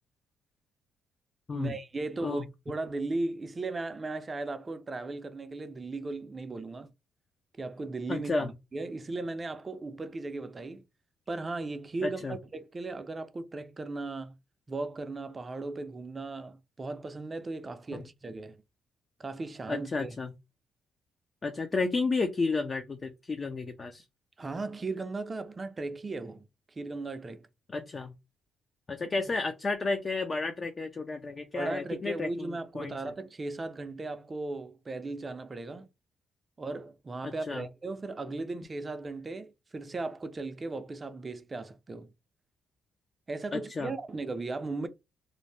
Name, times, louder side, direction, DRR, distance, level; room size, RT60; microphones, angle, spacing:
voice 1, 1.5-6.9 7.6-10.8 11.3-14.4 14.7-18.6 19.2-20.2 24.4-26.4 26.8-27.5 31.5-35.9 36.6-42.1 43.3-44.9, right 3 dB, 30° right, 0.5 m, -37 dB
voice 2, 8.1-8.5 12.0-12.4 17.9-18.0 19.7-20.3 21.4-24.0 27.7-28.1 28.9-33.1 37.5-37.6 43.5-43.9, left 3 dB, 35° left, 0.5 m, -32 dB
2.6 x 2.1 x 3.2 m
cardioid pair, 90°, 0 cm